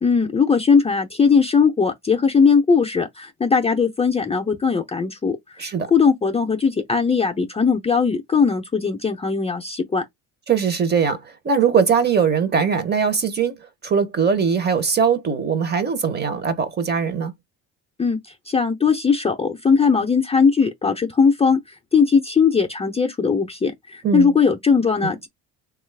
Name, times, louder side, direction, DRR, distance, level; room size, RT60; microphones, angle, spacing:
voice 1, 0.0-10.1 18.0-25.3, left 5 dB, 15° left, 0.5 m, -19 dB
voice 2, 5.6-5.9 10.5-17.3 24.0-24.3 25.0-25.1, right 6 dB, 30° right, 0.8 m, -21 dB
3.1 x 2.4 x 3.2 m
supercardioid pair, 90°, 36 cm